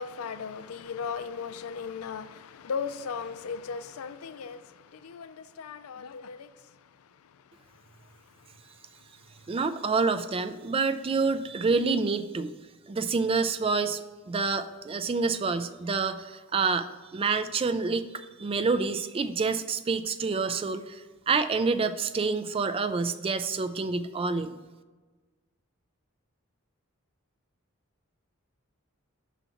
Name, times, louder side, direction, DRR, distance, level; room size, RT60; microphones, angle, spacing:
voice 1, 0.0-6.5, left 6 dB, 85° left, 0.4 m, -37 dB
voice 2, 9.5-12.5 12.9-24.6, right 4 dB, 25° right, 0.3 m, -28 dB
5.8 x 4.0 x 5.7 m
head